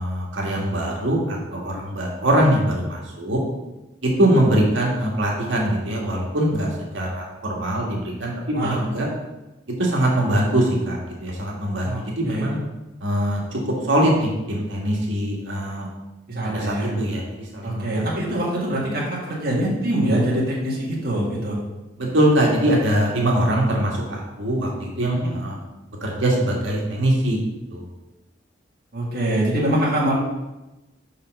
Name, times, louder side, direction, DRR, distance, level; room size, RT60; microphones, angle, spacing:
voice 1, 0.0-3.4 4.0-8.3 8.6-9.1 9.7-12.6 13.0-15.9 16.4-18.1 22.0-25.6 26.0-27.4 27.7-27.8, right 1 dB, 85° right, -2 dB, 1.8 m, -22 dB
voice 2, 8.5-8.8 11.8-12.5 16.3-16.9 17.6-21.6 25.1-25.5 28.9-30.1, right 1 dB, 50° right, -6 dB, 1.7 m, -24 dB
5.6 x 5.2 x 6.3 m, 1.0 s
head